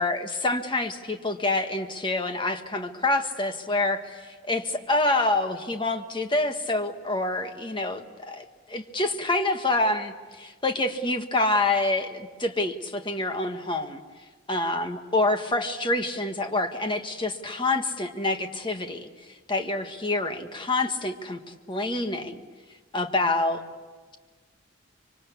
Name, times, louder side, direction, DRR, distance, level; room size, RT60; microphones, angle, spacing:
voice 1, 0.0-14.0 14.5-19.1 19.5-21.4 21.7-22.4 22.9-23.6, left 2 dB, 25° left, 6 dB, 1.5 m, -27 dB
25.0 x 24.0 x 8.4 m, 1.4 s
head